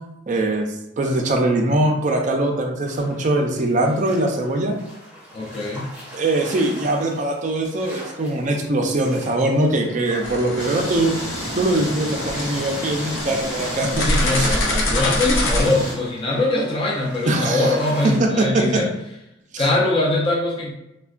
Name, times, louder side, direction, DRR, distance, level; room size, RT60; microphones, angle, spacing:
voice 1, 0.3-0.7 1.0-4.8 6.1-11.2 11.6-14.1 14.3-14.6 17.3-17.7 18.2-18.6 19.5-19.6, right 2 dB, 40° right, 2 dB, 0.4 m, -21 dB
sound 1, 2.8-18.2, equal, 5° right, 0.7 m, -41 dB
voice 2, 5.3-5.9 14.0-18.9 19.6-20.7, left 2 dB, 25° left, -4 dB, 0.5 m, -22 dB
sound 2, 10.2-15.7, left 1 dB, 70° left, 0.6 m, -25 dB
sound 3, 10.6-15.9, left 1 dB, 55° left, 1.3 m, -31 dB
3.4 x 2.1 x 2.4 m, 0.85 s
head